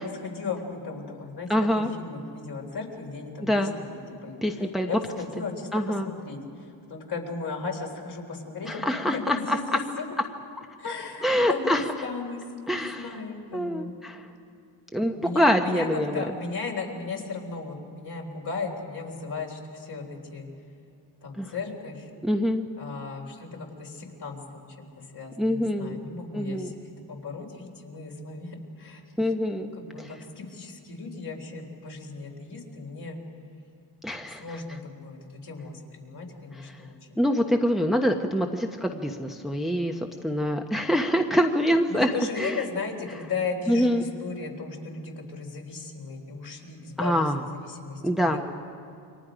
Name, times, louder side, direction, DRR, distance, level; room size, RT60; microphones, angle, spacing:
voice 1, 0.0-1.5 1.8-3.9 4.2-10.1 10.8-13.9 15.1-20.5 21.2-22.1 22.8-29.0 29.6-33.2 34.4-37.2 41.9-47.2 47.6-48.4, left 4 dB, 55° left, 1 dB, 4.0 m, -36 dB
voice 2, 1.5-1.9 3.4-3.7 4.4-4.9 5.7-6.1 8.7-9.6 11.2-11.8 12.7-13.2 13.5-14.3 14.9-16.2 21.4-21.5 22.2-22.6 25.4-26.0 26.3-26.7 29.2-29.7 30.0-30.1 34.0-34.6 36.5-36.8 37.2-42.1 42.4-42.6 43.7-44.1 47.0-47.4 48.0-48.4, equal, ahead, 3 dB, 1.1 m, -25 dB
29.0 x 24.0 x 5.1 m, 2.4 s
cardioid pair, 95°, 47 cm